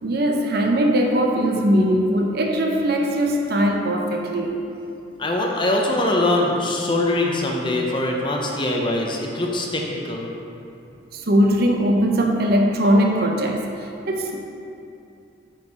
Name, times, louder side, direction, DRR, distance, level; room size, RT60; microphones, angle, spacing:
voice 1, 0.0-4.6 11.1-13.7 14.1-14.5, equal, 50° right, 2 dB, 0.6 m, -20 dB
voice 2, 5.2-10.3, left 2 dB, 25° left, 0 dB, 0.7 m, -22 dB
8.0 x 4.5 x 4.3 m, 2.6 s
head